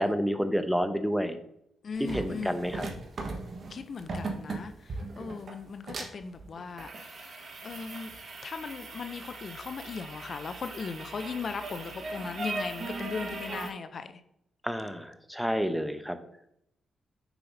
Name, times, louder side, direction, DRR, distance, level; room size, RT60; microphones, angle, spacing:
voice 1, 0.0-1.4 2.0-2.9 14.6-16.2, equal, ahead, 0.8 m, -29 dB
voice 2, 1.8-2.7 3.7-6.9 7.1-7.3 7.6-8.1 8.4-14.1, left 5 dB, 55° left, 0.5 m, -38 dB
sound 1, 2.0-13.7, right 3 dB, 55° right, 1.2 m, -39 dB
6.9 x 5.7 x 2.7 m
supercardioid pair, 45°, 0 cm